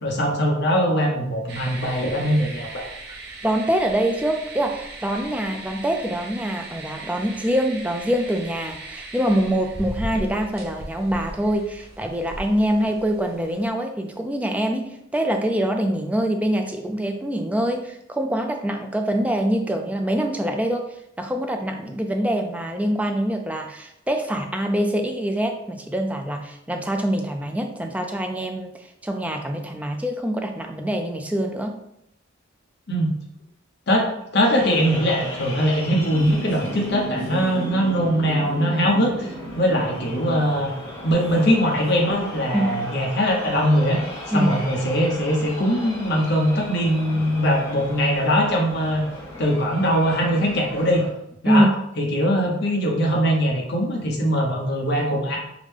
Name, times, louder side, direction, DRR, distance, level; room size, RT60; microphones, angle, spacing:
voice 1, 0.0-2.9 32.9-33.1 33.9-40.7 41.0-44.0 44.3-49.1 49.4-51.0 51.4-51.7 52.0-55.4, equal, 55° left, 0 dB, 0.8 m, -21 dB
sound 1, 1.5-13.7, right 2 dB, 50° right, 0.7 m, -38 dB
voice 2, 3.4-20.8 21.2-28.7 29.0-31.8 42.5-42.7 44.3-44.5 47.1-47.2 51.4-51.7, equal, 5° right, 3 dB, 0.3 m, -24 dB
sound 2, 34.6-51.1, equal, 30° left, 1.3 m, -35 dB
5.0 x 2.1 x 3.3 m, 0.79 s
head